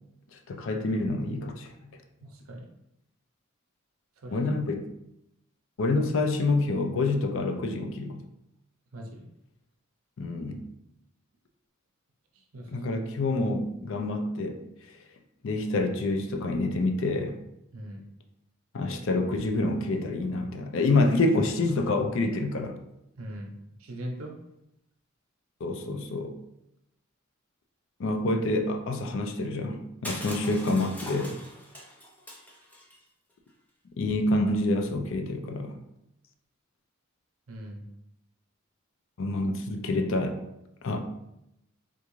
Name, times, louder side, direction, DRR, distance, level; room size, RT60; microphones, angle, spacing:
voice 1, 0.3-1.7 4.3-4.9 5.8-8.2 10.2-10.6 12.7-14.6 15.4-17.4 18.7-22.8 25.6-26.3 28.0-31.4 34.0-35.8 39.2-40.4 40.8-41.0, left 2 dB, 65° left, 5 dB, 0.4 m, -27 dB
voice 2, 2.2-2.7 4.2-4.5 8.9-9.3 12.3-12.8 17.7-18.0 23.2-23.5 23.8-24.3 37.5-37.8, right 1 dB, 85° right, 1 dB, 0.6 m, -40 dB
Crushing, 30.0-33.0, equal, 10° left, 0.4 m, -41 dB
3.6 x 2.5 x 3.0 m, 0.84 s
head